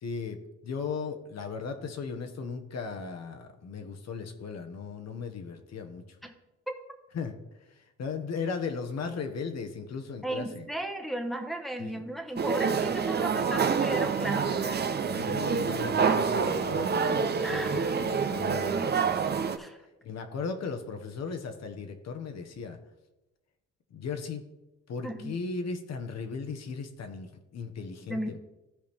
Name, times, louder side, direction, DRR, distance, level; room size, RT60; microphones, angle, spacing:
voice 1, 0.0-6.0 7.1-7.3 7.7-10.7 11.8-12.1 15.1-19.5 20.0-22.8 23.9-24.4 24.9-28.4, left 5 dB, 60° left, 6 dB, 1.3 m, -37 dB
voice 2, 10.2-14.8 17.4-18.0 19.6-19.8 25.0-25.4 28.1-28.4, right 1 dB, ahead, 3 dB, 1.2 m, -35 dB
sound 1, 12.4-19.6, right 6 dB, 35° right, 0.7 m, -27 dB
14.5 x 5.0 x 3.6 m, 1.0 s
cardioid pair, 90°, 30 cm